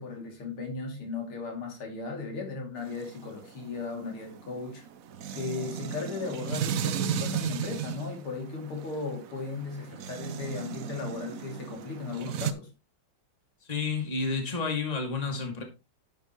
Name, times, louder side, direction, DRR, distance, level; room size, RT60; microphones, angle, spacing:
voice 1, 0.0-4.9 5.3-12.7, left 4 dB, 80° left, 3.6 m, -36 dB
sound 1, 2.8-12.5, right 8 dB, 85° right, 0.7 m, -35 dB
voice 2, 13.6-15.6, left 4 dB, 20° left, 2.2 m, -30 dB
10.5 x 8.5 x 3.0 m
omnidirectional pair, 2.4 m